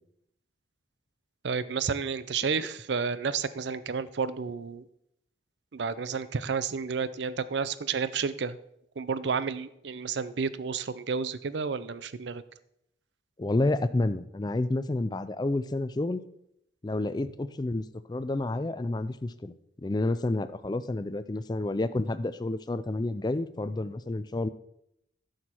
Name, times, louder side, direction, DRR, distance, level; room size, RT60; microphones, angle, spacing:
voice 1, 1.4-4.8 5.7-8.6 9.0-12.4, right 5 dB, 70° right, 15 dB, 0.5 m, -31 dB
voice 2, 13.4-16.2 16.8-19.5 19.8-24.5, left 2 dB, 20° left, 13 dB, 0.4 m, -29 dB
11.0 x 6.5 x 4.4 m, 0.77 s
head